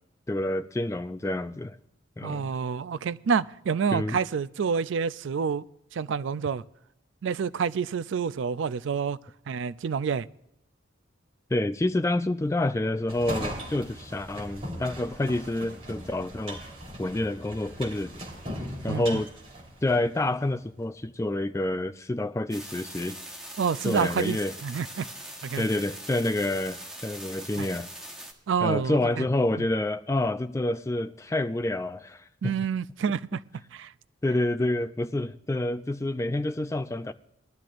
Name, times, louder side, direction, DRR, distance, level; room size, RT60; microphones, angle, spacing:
voice 1, 0.3-1.8 2.2-2.5 3.9-4.2 11.5-16.6 17.0-18.1 18.8-19.3 19.8-23.2 23.8-24.5 25.6-27.9 28.6-32.5 34.2-37.1, left 1 dB, 15° left, 0.3 m, -28 dB
voice 2, 2.2-5.6 5.9-6.6 7.2-9.2 9.5-10.3 18.9-19.2 23.6-25.1 25.4-25.7 27.6-27.7 28.5-29.2 29.6-29.7 32.4-33.4 33.7-33.9, right 6 dB, 70° right, 0.4 m, -28 dB
sound 1, 13.1-20.3, right 1 dB, 30° right, 3.7 m, -39 dB
sound 2, 22.5-28.3, right 1 dB, 5° right, 1.2 m, -42 dB
21.0 x 12.0 x 2.5 m
head